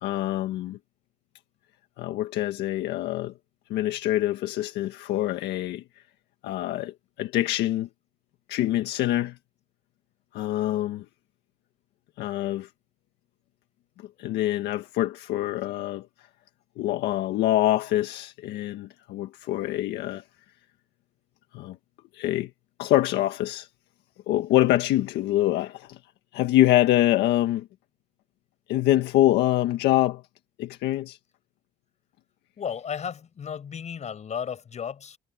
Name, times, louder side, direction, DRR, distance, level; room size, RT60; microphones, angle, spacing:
voice 1, 0.0-0.8 2.0-3.3 3.7-5.8 6.4-7.9 8.5-9.4 10.3-11.0 12.2-12.7 14.0-16.1 16.8-20.2 21.5-21.8 22.1-22.5 22.8-23.7 24.3-26.0 26.3-27.7 28.7-30.2 30.6-31.2, left 14 dB, 80° left, 1.6 m, -25 dB
voice 2, 32.6-35.2, left 7 dB, 45° left, 5.6 m, -34 dB
cardioid pair, 110°, 17 cm